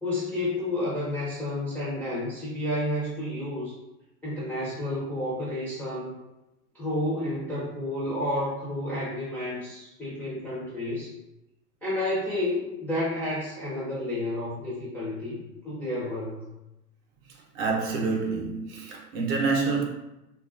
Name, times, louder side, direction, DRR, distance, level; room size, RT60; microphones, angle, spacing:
voice 1, 0.0-3.8 4.2-6.1 6.7-11.1 11.8-16.5, left 1 dB, 5° left, 0.5 m, -30 dB
voice 2, 17.5-19.8, right 4 dB, 40° right, 0.7 m, -27 dB
2.9 x 2.4 x 2.4 m
hypercardioid pair, 105°, 47 cm